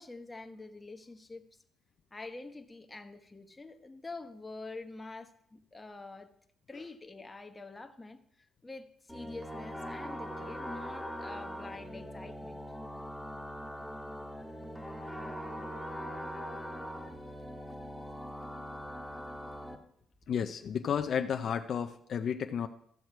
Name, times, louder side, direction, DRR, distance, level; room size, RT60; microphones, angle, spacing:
voice 1, 0.0-1.5 2.1-6.3 6.7-12.6, left 3 dB, 20° left, 6 dB, 1.1 m, -46 dB
sound 1, 9.1-19.7, equal, ahead, 1.4 m, -41 dB
voice 2, 20.3-22.7, left 7 dB, 60° left, 7 dB, 0.5 m, -32 dB
14.5 x 6.4 x 4.6 m, 0.69 s
cardioid pair, 90°, 0 cm